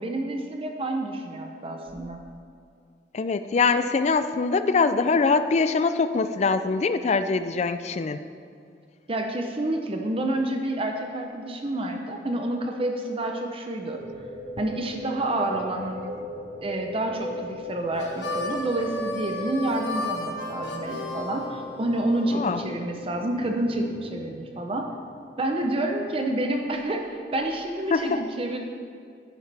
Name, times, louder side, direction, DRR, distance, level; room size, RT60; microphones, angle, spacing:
voice 1, 0.0-2.2 9.1-14.0 14.6-16.0 16.6-24.9 25.4-28.6, right 1 dB, 30° right, 3 dB, 0.7 m, -28 dB
voice 2, 3.1-8.2 22.3-22.6 27.9-28.2, left 4 dB, 40° left, 11 dB, 0.4 m, -23 dB
sound 1, 14.0-26.2, equal, 90° right, 2.0 m, -39 dB
Harmonica, 17.9-22.2, left 2 dB, 70° left, 1.5 m, -33 dB
10.0 x 9.8 x 3.4 m, 2.4 s
head